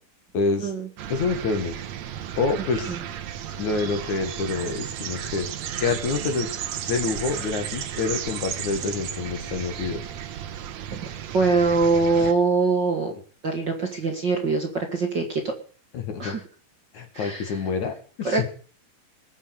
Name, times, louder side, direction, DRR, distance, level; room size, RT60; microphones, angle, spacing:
voice 1, 0.3-0.7 1.1-1.8 2.4-3.0 3.6-5.5 5.8-6.5 6.9-10.1 15.9-16.4 16.9-18.5, left 4 dB, 55° left, 6 dB, 3.1 m, -27 dB
sound 1, 1.0-12.3, right 10 dB, 65° right, 2.0 m, -34 dB
voice 2, 11.3-13.1 13.4-15.5 16.2-16.4 17.1-17.6 18.2-18.5, right 4 dB, 35° right, 2 dB, 2.3 m, -23 dB
20.0 x 7.4 x 8.3 m, 0.41 s
omnidirectional pair, 4.3 m